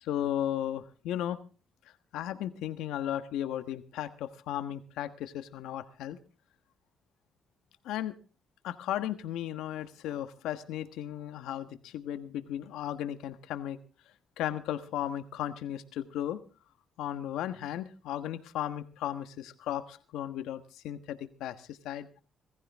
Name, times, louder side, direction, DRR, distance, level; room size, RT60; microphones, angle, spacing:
voice 1, 0.0-1.4 2.1-6.2 7.8-8.1 8.6-13.8 14.4-16.4 17.0-22.1, left 11 dB, 90° left, 10 dB, 1.3 m, -35 dB
19.0 x 15.0 x 3.5 m, 0.36 s
cardioid pair, 90°, 0 cm